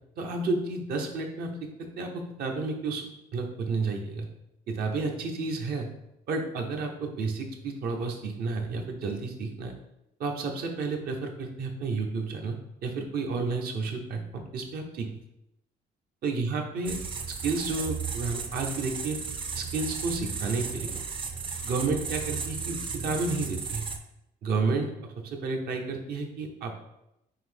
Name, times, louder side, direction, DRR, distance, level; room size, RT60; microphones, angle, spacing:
voice 1, 0.2-3.1 3.3-4.3 4.7-5.9 6.3-9.7 10.2-15.1 16.2-17.0 17.4-19.2 19.5-21.0 21.6-23.8 24.4-26.9, right 3 dB, 65° right, 3 dB, 0.8 m, -31 dB
sound 1, 16.8-24.0, right 5 dB, 30° right, 0.5 m, -35 dB
5.6 x 2.7 x 3.5 m, 0.84 s
cardioid pair, 110°, 17 cm